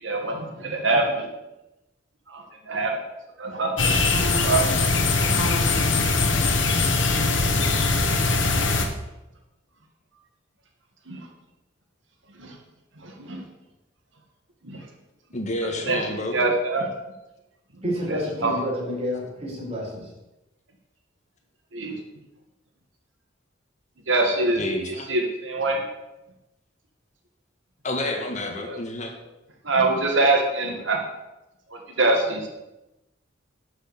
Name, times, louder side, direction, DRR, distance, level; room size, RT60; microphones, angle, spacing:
voice 1, 0.0-1.3 2.3-2.9 3.4-3.9 4.4-4.6 5.1-5.4 11.1-11.3 12.4-12.6 13.0-13.4 14.6-14.9 15.6-16.0 16.3-16.9 17.7-17.8 18.1-18.5 21.7-21.9 24.1-25.8 28.7-28.8 29.6-31.0 31.7-32.5, right 2 dB, 80° right, 2 dB, 1.9 m, -24 dB
sound 1, 3.8-8.9, left 3 dB, 75° left, 1.5 m, -21 dB
voice 2, 15.3-16.4 24.6-25.1 27.8-29.1, left 1 dB, 40° left, 3 dB, 1.6 m, -29 dB
voice 3, 17.8-20.0, equal, 35° right, -3 dB, 4.2 m, -29 dB
11.5 x 6.3 x 6.8 m, 0.98 s
head